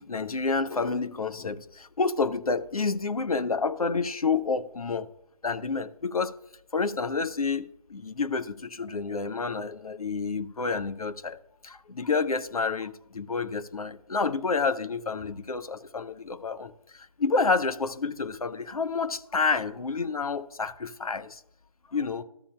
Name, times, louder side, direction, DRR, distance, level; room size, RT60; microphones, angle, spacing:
voice 1, 0.0-5.1 5.4-6.4 6.7-11.4 11.6-21.4 21.9-22.2, left 4 dB, 75° left, 0.7 m, -29 dB
13.0 x 8.2 x 2.2 m
figure-of-eight pair, 155°, 19 cm